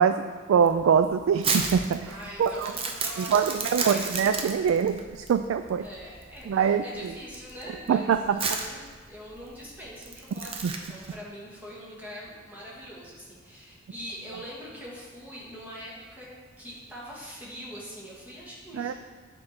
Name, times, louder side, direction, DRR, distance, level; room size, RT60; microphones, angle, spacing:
voice 1, 0.0-2.7 3.2-5.9 6.5-7.1 7.9-8.4 10.6-10.7 18.7-18.9, right 7 dB, 85° right, 8 dB, 0.3 m, -24 dB
Crumpling crinkling, 0.6-11.1, right 4 dB, 30° right, 0.6 m, -33 dB
voice 2, 2.1-4.1 5.8-16.3 16.6-18.9, equal, 10° right, -6 dB, 1.8 m, -43 dB
8.6 x 4.5 x 4.4 m, 1.4 s
head